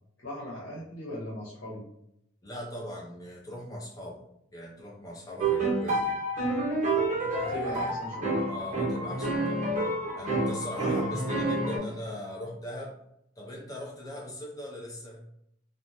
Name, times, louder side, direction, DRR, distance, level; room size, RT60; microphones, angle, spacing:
voice 1, 0.2-1.8 7.4-8.3, equal, 75° left, -5 dB, 0.9 m, -38 dB
voice 2, 2.4-4.2 4.5-6.2 7.3-8.0 8.5-9.7 10.2-13.0 13.4-15.2, left 1 dB, 20° left, -3 dB, 0.6 m, -40 dB
sound 1, 5.4-11.8, right 2 dB, 35° right, 0.7 m, -28 dB
3.1 x 2.1 x 2.6 m, 0.76 s
head